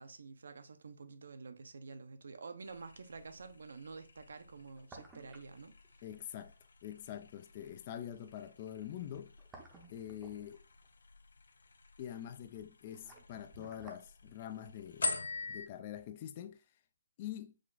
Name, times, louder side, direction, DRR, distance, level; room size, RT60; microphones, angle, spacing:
voice 1, 0.0-5.8, right 4 dB, 65° right, 0.6 m, -49 dB
sound 1, 2.6-15.7, left 3 dB, 75° left, 0.6 m, -46 dB
sound 2, 4.8-5.6 5.8-5.9 9.1-10.9 12.6-14.1 14.4-14.5, right 3 dB, 10° right, 0.6 m, -56 dB
voice 2, 6.0-6.5 6.8-9.3 9.9-10.6 12.0-15.2 15.5-16.6 17.2-17.5, left 10 dB, 25° left, 0.3 m, -45 dB
4.9 x 2.4 x 3.8 m
hypercardioid pair, 165°, 0 cm